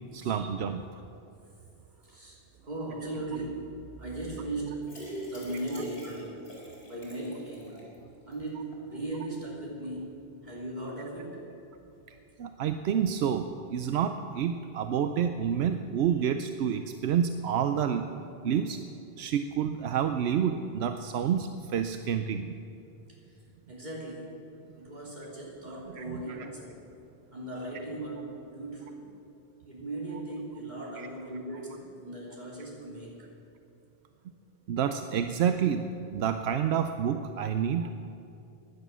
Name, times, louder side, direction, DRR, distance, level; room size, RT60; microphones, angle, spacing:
voice 1, 0.1-0.8 12.4-18.1 18.4-18.8 19.2-22.6 25.9-26.2 27.4-27.6 31.0-31.1 34.7-37.9, right 8 dB, 80° right, 8 dB, 0.9 m, -29 dB
voice 2, 2.6-4.9 5.3-6.5 6.8-7.8 8.3-11.5 23.7-24.3 24.7-26.8 27.3-29.1 29.7-33.2, right 2 dB, 45° right, -4 dB, 3.4 m, -38 dB
sound 1, 4.8-8.0 8.3-8.4 8.7-8.8, equal, 70° left, 4.6 m, -42 dB
16.0 x 10.5 x 6.1 m, 2.7 s
omnidirectional pair, 1.1 m